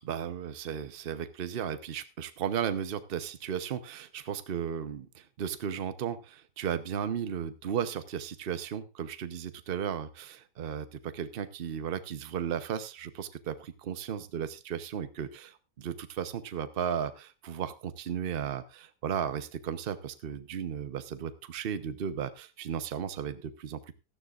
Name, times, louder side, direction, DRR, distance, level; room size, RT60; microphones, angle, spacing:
voice 1, 0.0-23.8, right 8 dB, 45° right, 11 dB, 0.8 m, -35 dB
16.5 x 12.5 x 2.5 m, 0.27 s
omnidirectional pair, 1.8 m